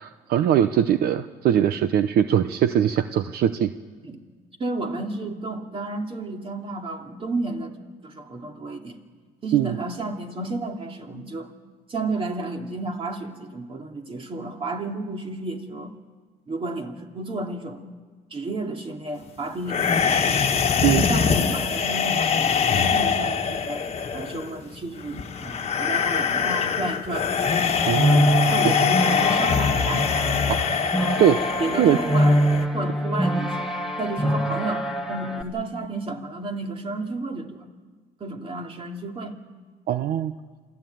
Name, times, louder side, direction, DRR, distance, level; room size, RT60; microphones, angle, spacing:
voice 1, 0.0-3.7 9.5-9.8 20.8-21.0 27.9-28.4 28.6-28.7 31.2-31.4 31.8-32.0 39.9-40.3, right 10 dB, 65° right, 11 dB, 0.8 m, -21 dB
voice 2, 4.6-7.8 8.0-9.0 9.4-11.5 11.9-15.9 16.5-17.9 18.3-20.4 20.9-23.8 24.1-27.3 28.4-30.5 31.6-32.4 32.7-33.7 34.0-37.7 38.2-39.4, right 2 dB, 30° right, 3 dB, 2.7 m, -32 dB
sound 1, 19.7-32.7, left 6 dB, 35° left, 1.5 m, -23 dB
sound 2, 27.4-35.4, equal, 5° right, 2.6 m, -24 dB
27.0 x 14.5 x 9.2 m, 1.5 s
cardioid pair, 110°, 17 cm